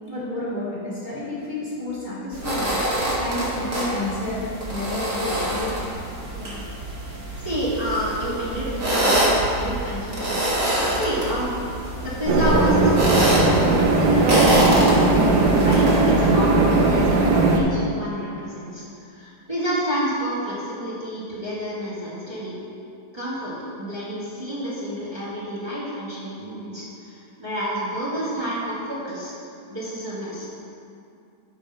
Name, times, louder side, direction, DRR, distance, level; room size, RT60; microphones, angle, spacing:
voice 1, 0.1-2.7 3.2-5.7, left 2 dB, 30° left, -9 dB, 1.9 m, -30 dB
sound 1, 2.3-16.0, right 1 dB, 50° right, 2.3 m, -25 dB
voice 2, 7.0-10.4 10.9-11.6 12.0-13.4 13.9-18.8 19.1-22.6 23.1-29.3 29.7-30.5, equal, 15° right, -9 dB, 1.9 m, -29 dB
sound 2, 12.3-17.6, right 2 dB, 90° right, 1.6 m, -18 dB
12.0 x 4.4 x 5.6 m, 2.5 s
omnidirectional pair, 1.7 m